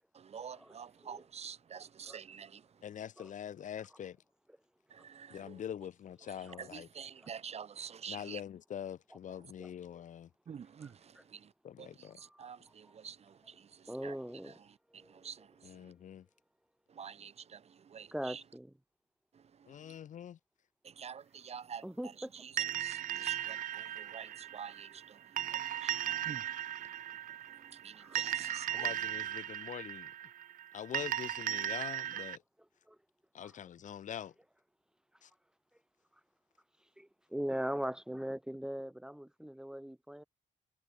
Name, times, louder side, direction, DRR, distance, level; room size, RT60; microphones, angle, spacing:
voice 1, 0.1-2.8 4.9-5.6 6.3-8.4 10.5-11.5 11.8-14.2 14.4-15.9 16.9-18.4 19.3-19.9 20.8-28.9, right 7 dB, 50° right, 1.1 m, -49 dB
voice 2, 2.8-4.2 5.3-6.9 8.1-10.3 11.6-12.2 15.6-16.3 19.7-20.4 28.7-30.1 30.7-32.4 33.3-34.3 35.2-35.3, left 9 dB, 65° left, 1.1 m, -44 dB
voice 3, 12.2-12.5 13.9-14.6 14.9-15.1 18.1-18.7 21.8-22.3 25.7-26.2 27.9-28.3 32.9-33.0 33.4-33.5 37.0-40.2, equal, 5° right, 0.7 m, -41 dB
sound 1, 22.6-32.4, right 11 dB, 80° right, 0.7 m, -37 dB
cardioid pair, 110°, 14 cm